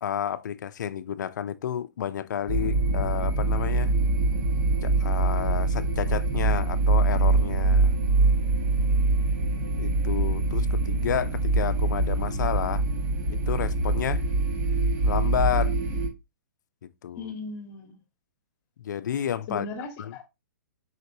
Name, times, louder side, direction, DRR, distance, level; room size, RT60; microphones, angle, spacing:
voice 1, 0.0-3.9 4.8-7.9 9.8-12.8 13.3-14.2 15.0-15.7 16.8-17.3 18.8-19.7 20.0-20.1, left 9 dB, 70° left, 0.5 m, -31 dB
sound 1, 2.5-16.1, right 3 dB, 45° right, 1.3 m, -24 dB
voice 2, 17.2-17.9 19.5-20.3, left 3 dB, 35° left, 1.1 m, -37 dB
4.7 x 3.3 x 2.7 m
hypercardioid pair, 140°, 10 cm